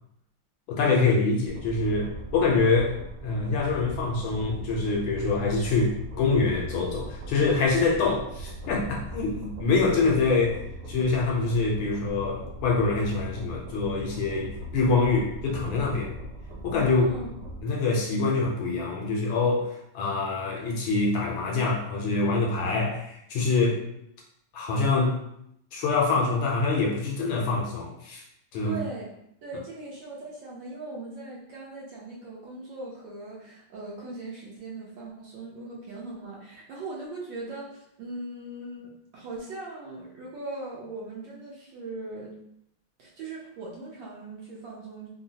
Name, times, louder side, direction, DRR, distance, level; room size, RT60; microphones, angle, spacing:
voice 1, 0.7-3.0 3.2-10.6 10.9-16.1 16.6-17.1 17.6-23.8 24.5-25.2 25.7-28.2 28.5-28.8, left 3 dB, 75° left, -1 dB, 1.2 m, -25 dB
sound 1, 1.5-17.6, right 1 dB, 85° right, 0.9 m, -40 dB
voice 2, 16.9-17.4 28.6-29.1 29.4-42.3 43.0-45.1, right 2 dB, 70° right, -4 dB, 1.2 m, -39 dB
3.7 x 2.1 x 2.7 m, 0.75 s
omnidirectional pair, 2.4 m